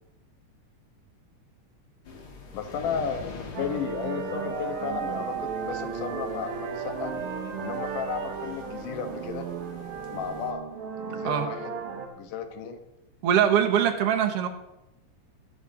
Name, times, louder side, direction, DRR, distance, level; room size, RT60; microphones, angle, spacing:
sound 1, 2.0-10.5, left 3 dB, 45° left, 1.5 m, -46 dB
voice 1, 2.5-7.1 7.6-9.5 10.1-10.6 11.0-11.7 12.1-12.8, left 7 dB, 80° left, 7 dB, 2.7 m, -34 dB
sound 2, 3.5-12.1, right 6 dB, 80° right, 3.1 m, -34 dB
voice 2, 13.2-14.5, right 9 dB, 60° right, 4 dB, 1.8 m, -22 dB
14.0 x 6.0 x 7.2 m, 0.93 s
omnidirectional pair, 3.6 m